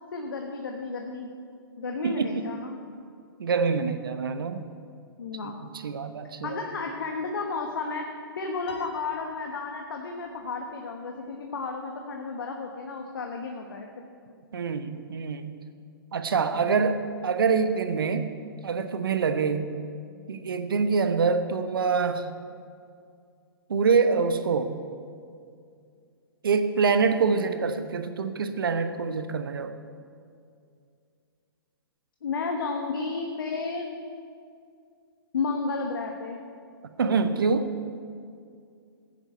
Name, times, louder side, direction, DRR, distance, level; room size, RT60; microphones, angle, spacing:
voice 1, 0.1-1.3 1.8-2.8 5.2-5.6 6.4-8.1 8.4-13.9 16.5-16.7 32.2-34.0 35.3-36.4, left 4 dB, 65° left, 3 dB, 1.2 m, -32 dB
voice 2, 2.0-2.4 3.4-4.7 5.4-5.5 5.8-6.6 14.5-15.5 16.1-18.3 18.6-19.7 20.3-22.3 23.7-24.7 26.4-29.8 36.8-37.7, right 5 dB, 65° right, 10 dB, 1.0 m, -25 dB
Piano, 8.7-10.2, left 4 dB, 85° left, 1.5 m, -46 dB
15.5 x 9.9 x 4.5 m, 2.3 s
figure-of-eight pair, 120°, 13 cm